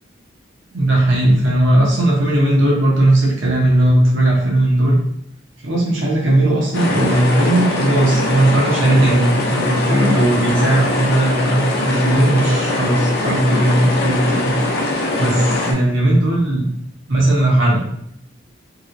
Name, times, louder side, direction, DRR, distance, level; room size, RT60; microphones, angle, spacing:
voice 1, 0.7-5.0 5.6-14.5 15.2-16.7 17.1-17.8, right 1 dB, 80° right, -4 dB, 0.9 m, -16 dB
sound 1, 6.7-15.7, left 2 dB, 55° left, 0.5 m, -21 dB
2.9 x 2.9 x 2.6 m, 0.73 s
head